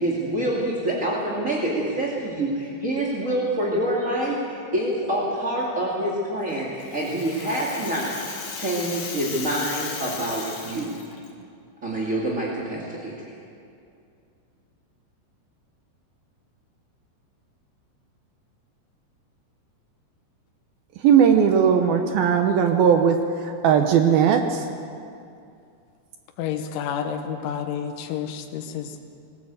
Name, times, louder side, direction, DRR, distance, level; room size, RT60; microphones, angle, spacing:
voice 1, 0.0-8.2 8.5-10.9 11.8-13.3, right 1 dB, 30° right, -5 dB, 1.6 m, -26 dB
Rattle (instrument), 6.5-11.3, left 5 dB, 45° left, 3.0 m, -36 dB
voice 2, 21.0-23.2 23.4-24.7, right 7 dB, 75° right, 5 dB, 2.3 m, -18 dB
voice 3, 26.4-29.0, left 8 dB, 85° left, 5 dB, 3.7 m, -30 dB
21.0 x 18.0 x 8.2 m, 2.5 s
omnidirectional pair, 5.4 m